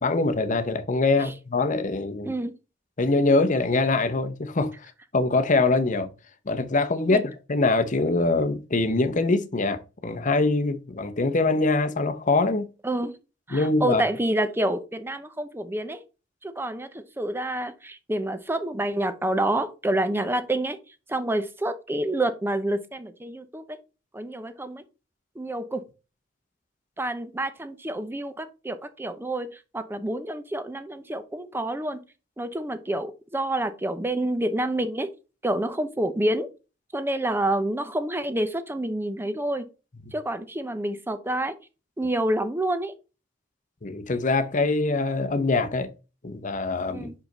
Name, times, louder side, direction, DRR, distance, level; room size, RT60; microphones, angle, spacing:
voice 1, 0.0-2.3 3.0-4.7 5.1-6.1 6.5-12.7 13.5-14.0 40.0-40.1 43.8-45.9 46.2-47.1, left 3 dB, 40° left, 0.8 m, -23 dB
voice 2, 2.2-2.5 7.1-7.2 12.8-13.1 13.5-16.0 16.4-20.8 21.1-23.8 24.1-24.8 25.4-25.9 27.0-32.0 32.4-35.1 35.4-36.5 36.9-39.7 40.1-41.5 42.0-42.9 46.9-47.1, right 1 dB, 10° right, 0.7 m, -28 dB
5.8 x 5.0 x 3.9 m
head